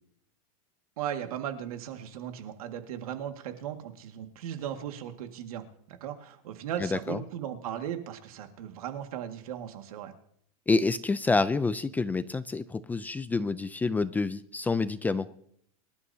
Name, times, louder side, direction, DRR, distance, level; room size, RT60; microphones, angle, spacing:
voice 1, 1.0-10.1, right 10 dB, 80° right, 6 dB, 2.0 m, -37 dB
voice 2, 6.8-7.2 10.7-15.3, left 3 dB, 10° left, 13 dB, 0.4 m, -28 dB
24.5 x 12.5 x 2.8 m, 0.68 s
supercardioid pair, 145°, 18 cm